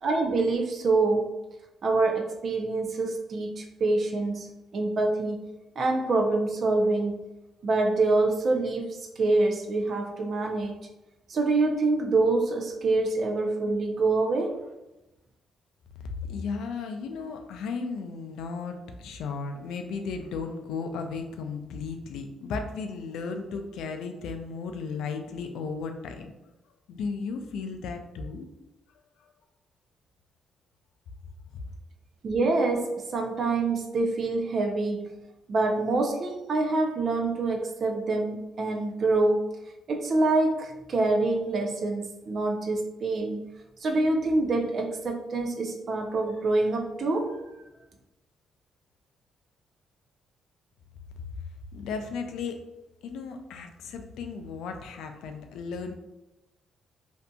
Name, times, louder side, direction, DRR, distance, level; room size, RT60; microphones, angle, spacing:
voice 1, 0.0-1.3 1.8-5.5 5.8-7.3 7.6-10.8 11.3-14.6 32.2-35.1 35.5-39.5 39.9-43.4 43.8-47.4, right 3 dB, 50° right, 3 dB, 0.4 m, -26 dB
voice 2, 16.0-26.3 26.9-28.5 29.2-29.3 51.2-51.3 51.7-52.6 53.0-55.9, left 5 dB, 85° left, 5 dB, 0.3 m, -35 dB
2.7 x 2.5 x 2.2 m, 0.98 s
cardioid pair, 90°, 0 cm